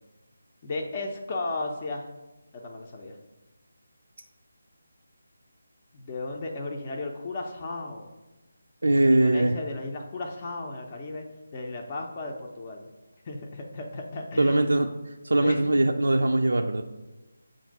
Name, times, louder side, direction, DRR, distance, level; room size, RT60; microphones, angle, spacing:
voice 1, 0.6-2.1 2.5-3.2 5.9-8.1 9.1-11.2 11.5-12.9 13.2-14.7 15.4-15.6, left 2 dB, 30° left, 1 dB, 0.6 m, -34 dB
voice 2, 8.8-9.5 14.4-14.9 15.2-16.8, right 1 dB, 70° right, 3 dB, 0.4 m, -21 dB
7.1 x 2.6 x 5.1 m, 1.1 s
figure-of-eight pair, 155°, 0 cm